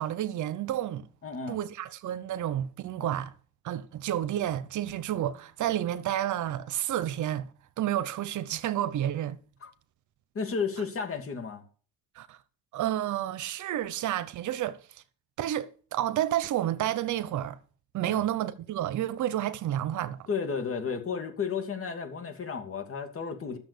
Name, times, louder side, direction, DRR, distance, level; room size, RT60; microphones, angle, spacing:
voice 1, 0.0-1.1 1.5-3.3 3.6-7.5 7.8-9.4 12.2-12.4 12.7-15.0 15.4-17.6 17.9-20.3, right 12 dB, 75° right, 0.9 m, -30 dB
voice 2, 1.2-1.6 3.0-3.1 9.6-9.7 10.3-11.6 18.1-18.2 20.3-23.6, left 5 dB, 45° left, 2.6 m, -33 dB
12.5 x 6.9 x 6.8 m
cardioid pair, 90°, 30 cm